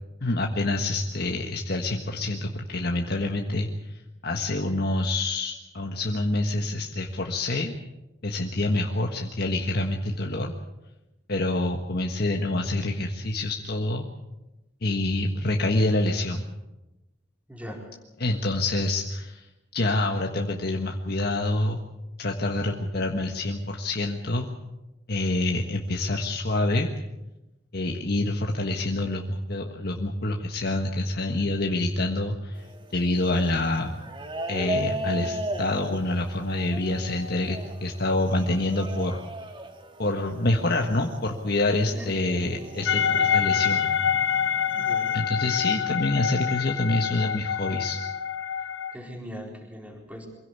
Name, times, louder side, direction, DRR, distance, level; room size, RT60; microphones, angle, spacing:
voice 1, 0.2-7.7 8.2-10.5 11.3-14.0 14.8-16.4 18.2-19.5 19.7-21.8 22.2-24.5 25.1-26.9 27.7-32.6 32.9-34.0 34.5-39.2 40.0-43.8 45.1-48.0, left 2 dB, 60° left, 2 dB, 1.6 m, -27 dB
voice 2, 17.5-17.9 41.9-42.2 44.7-45.3 48.9-50.3, equal, 10° right, 1 dB, 4.2 m, -40 dB
sound 1, 32.5-43.8 44.5-45.2, equal, 30° right, 2.0 m, -37 dB
sound 2, 42.9-49.0, left 7 dB, 85° left, 1.0 m, -26 dB
24.0 x 16.5 x 8.3 m, 1.0 s
head